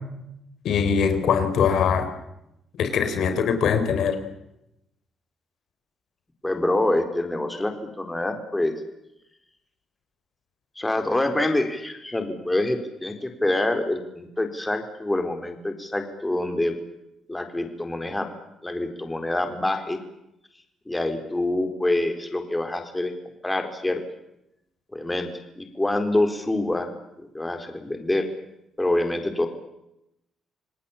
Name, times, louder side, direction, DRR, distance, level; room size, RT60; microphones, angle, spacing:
voice 1, 0.6-2.1 2.8-4.2, left 6 dB, 70° left, 9 dB, 4.0 m, -22 dB
voice 2, 6.4-8.7 10.8-16.8 17.3-18.3 18.6-20.0 20.9-23.1 23.4-24.0 24.9-25.3 25.6-26.9 27.2-28.3 28.8-29.5, left 1 dB, 10° left, 6 dB, 4.2 m, -26 dB
27.5 x 19.0 x 8.8 m, 0.84 s
cardioid pair, 90°, 0 cm